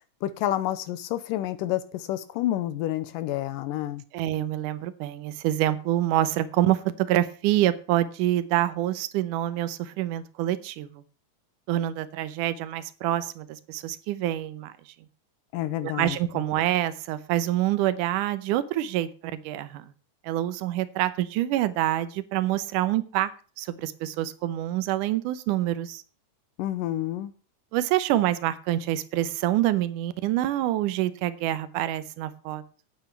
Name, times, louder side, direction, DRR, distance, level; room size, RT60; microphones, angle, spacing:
voice 1, 0.2-4.0 15.5-16.2 26.6-27.3, left 13 dB, 90° left, 12 dB, 2.4 m, -29 dB
voice 2, 4.1-11.0 11.7-14.7 15.8-19.9 20.2-23.3 23.6-26.0 27.7-32.6, right 13 dB, 80° right, 13 dB, 2.3 m, -26 dB
9.1 x 9.1 x 7.2 m, 0.38 s
omnidirectional pair, 3.8 m